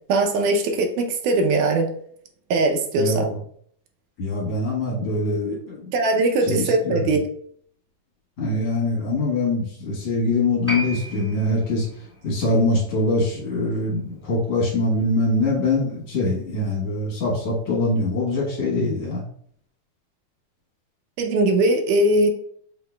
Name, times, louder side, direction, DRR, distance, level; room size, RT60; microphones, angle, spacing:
voice 1, 0.1-1.9 2.5-3.3 5.9-7.2 21.2-22.3, right 2 dB, 85° right, 4 dB, 2.2 m, -20 dB
voice 2, 3.0-3.4 4.2-5.8 6.5-7.1 8.4-11.9 12.2-19.2, left 2 dB, 55° left, -5 dB, 2.2 m, -23 dB
Piano, 10.7-17.6 17.9-18.0, equal, 10° right, 0.9 m, -38 dB
6.2 x 3.8 x 2.2 m, 0.63 s
omnidirectional pair, 3.6 m